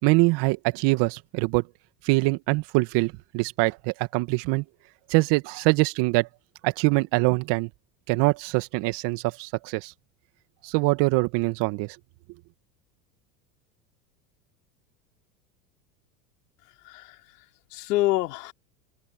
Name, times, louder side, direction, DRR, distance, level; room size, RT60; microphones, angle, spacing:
voice 1, 0.0-1.7 2.0-4.6 5.1-6.3 6.6-7.7 8.1-9.9 10.6-12.0, right 25 dB, 60° right, 2.2 m, -24 dB
voice 2, 16.6-18.5, left 18 dB, 75° left, 3.2 m, -28 dB
open air
hypercardioid pair, 85°, 48 cm